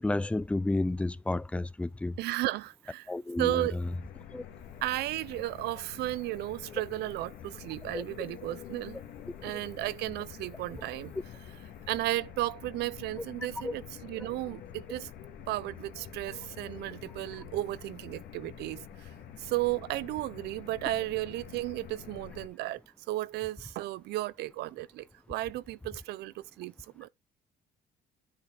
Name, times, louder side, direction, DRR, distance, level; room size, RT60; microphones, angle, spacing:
voice 1, 0.0-2.1 3.1-3.6 4.3-4.4 7.9-8.0 13.6-13.7, left 2 dB, 5° left, 0.4 m, -31 dB
voice 2, 2.2-3.1 3.4-3.8 4.8-9.0 9.4-11.1 11.9-15.1 15.5-19.1 19.4-22.8 23.1-27.1, right 17 dB, 80° right, 0.5 m, -34 dB
sound 1, 3.8-22.5, left 9 dB, 75° left, 1.7 m, -47 dB
10.0 x 4.5 x 4.4 m
cardioid pair, 110°, 17 cm